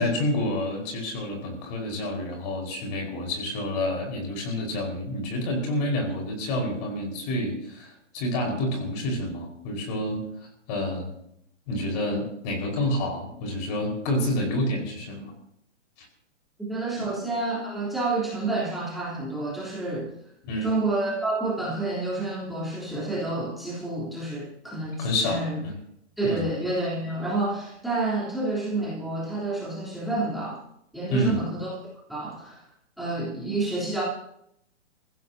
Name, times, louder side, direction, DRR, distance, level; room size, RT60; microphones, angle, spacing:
voice 1, 0.0-10.2 10.7-11.1 11.7-15.3 16.0-16.1 17.0-17.1 20.4-20.7 25.0-25.7 26.2-26.4 31.1-31.4, left 1 dB, 35° left, 1 dB, 5.0 m, -28 dB
voice 2, 16.6-20.1 20.6-25.6 26.2-30.6 30.9-31.8 32.1-32.6 33.0-34.0, right 2 dB, ahead, -7 dB, 3.5 m, -29 dB
28.0 x 16.0 x 2.8 m, 0.74 s
hypercardioid pair, 150°, 36 cm